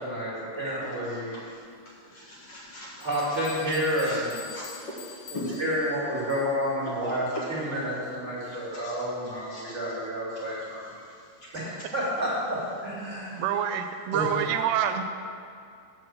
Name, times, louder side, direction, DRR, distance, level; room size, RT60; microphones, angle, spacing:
voice 1, 0.0-1.3 3.0-4.4 5.3-10.8 11.5-13.4 14.1-14.3, equal, 25° right, -6 dB, 2.0 m, -30 dB
voice 2, 0.8-1.2 2.1-3.1 4.0-4.2 4.5-5.6 7.0-7.1 7.5-7.6 8.7-8.9 9.2-9.6, left 1 dB, 55° left, -6 dB, 2.2 m, -41 dB
sound 1, 2.6-2.7 3.0-6.7, left 7 dB, 80° left, 1.1 m, -46 dB
voice 3, 13.4-15.0, right 9 dB, 85° right, 8 dB, 2.1 m, -27 dB
6.5 x 6.4 x 7.6 m, 2.4 s
omnidirectional pair, 3.8 m